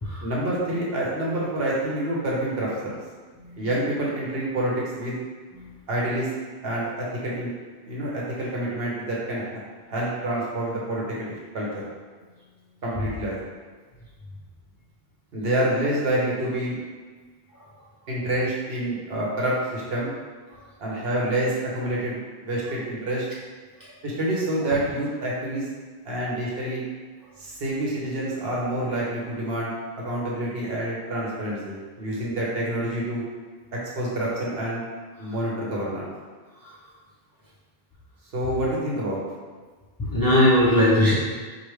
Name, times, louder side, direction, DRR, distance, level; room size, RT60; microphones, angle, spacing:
voice 1, 0.2-3.0 3.6-5.2 5.9-6.3 6.6-7.5 7.8-9.6 9.9-11.8 12.8-13.6 15.3-16.8 18.1-20.1 20.8-23.3 24.0-25.7 26.0-26.8 27.4-29.7 30.0-33.2 33.7-34.8 35.2-36.1 38.3-39.2, right 1 dB, 65° right, -5 dB, 1.1 m, -27 dB
voice 2, 40.1-41.2, left 1 dB, 25° left, -8 dB, 0.6 m, -19 dB
4.9 x 2.4 x 3.1 m, 1.4 s
omnidirectional pair, 1.1 m